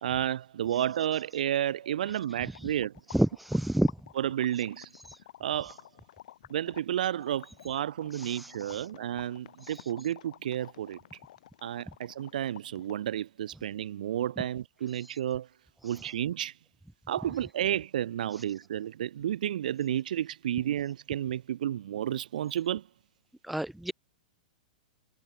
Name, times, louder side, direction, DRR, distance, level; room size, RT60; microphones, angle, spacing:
voice 1, 0.0-2.9 4.2-4.9 5.4-5.8 6.5-11.0 11.6-15.5 15.8-16.5 17.1-22.8, right 11 dB, 65° right, 3.8 m, -31 dB
sound 1, 1.5-13.1, left 13 dB, 55° left, 6.0 m, -52 dB
voice 2, 3.1-3.9 8.1-8.8 23.4-23.9, right 1 dB, ahead, 1.2 m, -28 dB
supercardioid pair, 170°, 5 cm